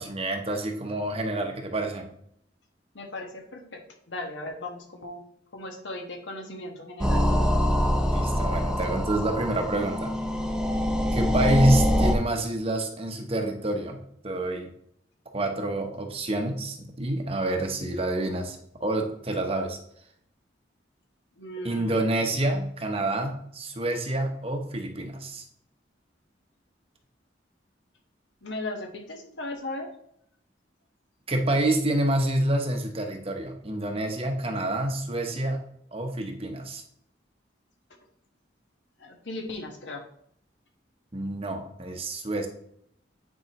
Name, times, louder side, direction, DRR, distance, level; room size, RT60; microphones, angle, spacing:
voice 1, 0.0-2.1 7.9-10.1 11.1-14.7 15.3-19.8 21.6-25.4 31.3-35.6 35.9-36.8 41.1-42.5, right 1 dB, 30° right, 4 dB, 0.9 m, -28 dB
voice 2, 2.9-3.8 4.1-5.2 5.5-7.2 11.4-11.6 21.4-22.3 28.4-29.9 39.0-40.0, left 2 dB, 80° left, 2 dB, 1.4 m, -37 dB
sound 1, 7.0-12.2, equal, 5° right, 0.6 m, -24 dB
9.4 x 4.7 x 3.0 m, 0.70 s
head